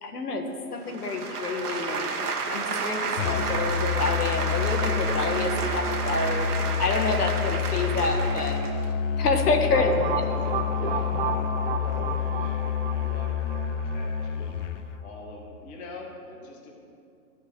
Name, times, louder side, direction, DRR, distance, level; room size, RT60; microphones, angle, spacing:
voice 1, 0.0-2.0 2.5-6.5 6.8-8.6 9.2-9.9, left 3 dB, 80° left, 4 dB, 1.7 m, -28 dB
sound 1, 0.8-8.9, right 4 dB, 90° right, 1.4 m, -31 dB
Musical instrument, 3.2-14.9, left 7 dB, 55° left, 0.7 m, -28 dB
voice 2, 9.7-14.5 15.0-16.7, left 3 dB, 15° left, -1 dB, 1.1 m, -43 dB
sound 2, 9.7-14.5, right 6 dB, 40° right, 0.8 m, -32 dB
13.0 x 5.4 x 7.9 m, 2.5 s
hypercardioid pair, 155°, 45 cm